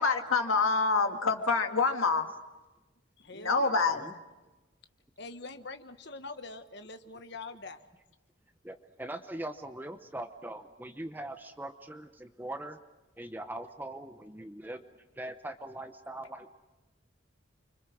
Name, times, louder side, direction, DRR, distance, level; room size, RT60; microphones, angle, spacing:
voice 1, 0.0-2.3 3.3-4.2, left 4 dB, 85° left, 5 dB, 1.9 m, -27 dB
voice 2, 3.2-3.8 5.2-7.8, left 3 dB, 55° left, 9 dB, 1.2 m, -44 dB
voice 3, 8.6-12.8 13.2-14.8 15.2-16.5, right 1 dB, 10° right, 8 dB, 0.9 m, -41 dB
30.0 x 25.0 x 6.2 m, 1.1 s
head